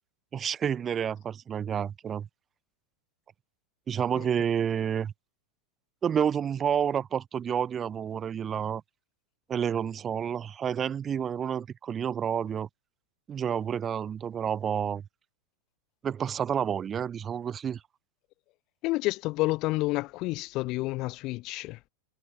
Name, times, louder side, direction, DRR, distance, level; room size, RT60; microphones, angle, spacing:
voice 1, 0.3-2.3 3.9-5.1 6.0-8.8 9.5-12.7 13.3-15.0 16.0-17.8, right 8 dB, 25° right, 0.5 m, -29 dB
voice 2, 4.1-4.4 18.8-21.8, left 20 dB, 40° left, 1.1 m, -30 dB
figure-of-eight pair, 90°, 0 cm